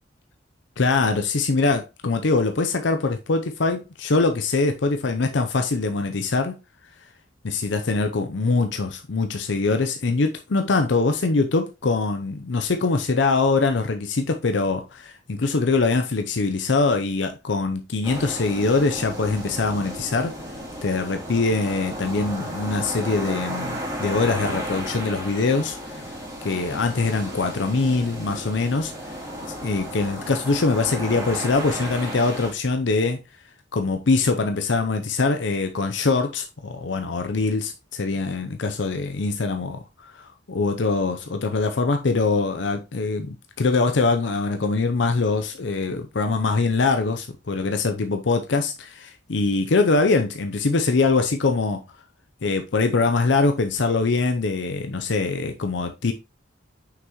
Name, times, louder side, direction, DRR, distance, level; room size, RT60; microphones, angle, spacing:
voice 1, 0.8-6.5 7.4-20.3 20.8-26.0 26.4-29.1 29.5-33.2 33.7-51.8 52.4-56.1, left 3 dB, 70° left, 0.6 m, -23 dB
sound 1, 18.0-32.5, equal, 15° right, 2.2 m, -33 dB
6.0 x 5.9 x 3.0 m
head